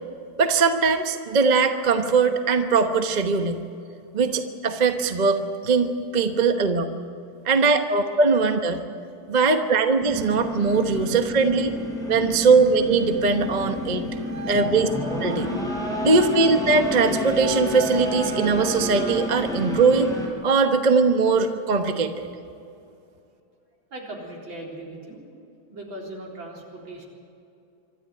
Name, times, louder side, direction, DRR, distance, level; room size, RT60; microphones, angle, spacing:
voice 1, 0.4-3.6 4.1-5.4 5.6-6.9 7.4-8.8 9.3-11.7 12.1-14.9 15.2-15.5 16.0-20.1 20.4-22.3, right 4 dB, 35° right, 6 dB, 0.7 m, -21 dB
sound 1, 10.0-20.3, left 1 dB, ahead, 5.0 m, -29 dB
voice 2, 23.9-25.2 25.7-27.0, right 1 dB, 60° right, -2 dB, 4.6 m, -38 dB
25.5 x 13.0 x 9.3 m, 2.6 s
omnidirectional pair, 2.4 m